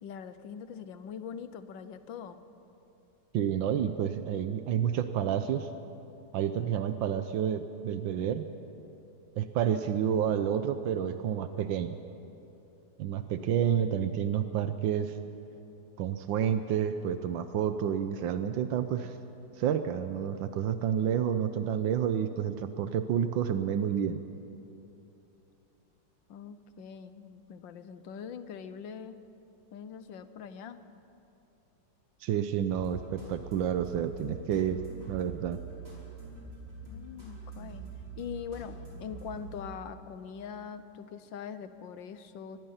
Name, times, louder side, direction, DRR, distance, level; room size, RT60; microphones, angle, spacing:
voice 1, 0.0-2.4 13.4-13.9 26.3-29.2 29.7-30.8 36.8-37.9 38.2-42.6, left 7 dB, 80° left, 11 dB, 1.7 m, -43 dB
voice 2, 3.3-5.7 6.3-8.5 9.4-12.0 13.0-15.2 16.0-19.2 19.6-24.2 32.2-34.8 35.1-35.6, right 9 dB, 85° right, 9 dB, 1.5 m, -29 dB
sound 1, 32.8-39.5, right 3 dB, 45° right, 6.0 m, -44 dB
24.0 x 20.5 x 5.7 m, 2.8 s
omnidirectional pair, 2.0 m